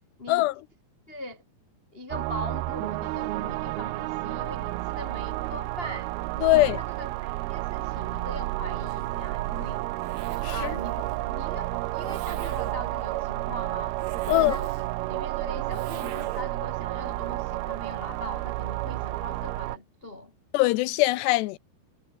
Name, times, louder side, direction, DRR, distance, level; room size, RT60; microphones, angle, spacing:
voice 1, 1.1-1.4 1.9-9.8 10.5-11.0 11.3-13.9 14.2-14.7 15.1-20.3, left 1 dB, 45° left, 0.7 m, -41 dB
sound 1, 2.1-19.8, right 19 dB, 80° right, 2.5 m, -31 dB
voice 2, 6.4-6.8 10.4-10.6 14.3-14.6 20.5-21.6, left 19 dB, 85° left, 2.9 m, -21 dB
Zipper (clothing), 8.8-16.7, right 9 dB, 55° right, 2.4 m, -44 dB
omnidirectional pair, 4.7 m